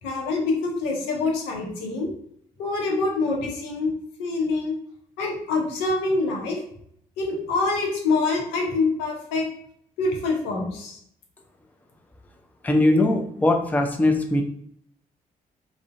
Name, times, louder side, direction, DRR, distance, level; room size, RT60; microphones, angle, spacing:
voice 1, 0.0-2.1 2.6-3.9 4.2-4.7 5.2-6.6 7.2-9.5 10.0-11.0, left 3 dB, 80° left, 0 dB, 0.6 m, -25 dB
voice 2, 12.6-14.4, left 2 dB, 10° left, 3 dB, 0.4 m, -20 dB
2.4 x 2.0 x 2.5 m, 0.67 s
hypercardioid pair, 45°, 18 cm